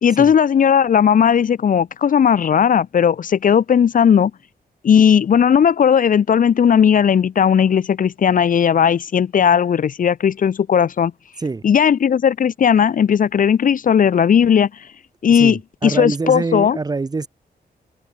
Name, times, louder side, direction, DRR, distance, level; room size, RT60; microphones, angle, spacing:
voice 1, 0.0-4.3 4.8-11.1 11.6-14.9 15.2-16.8, left 8 dB, 55° left, 1.6 m, -16 dB
voice 2, 15.4-17.3, right 3 dB, 25° right, 2.6 m, -24 dB
open air
wide cardioid pair, 180°, 17 cm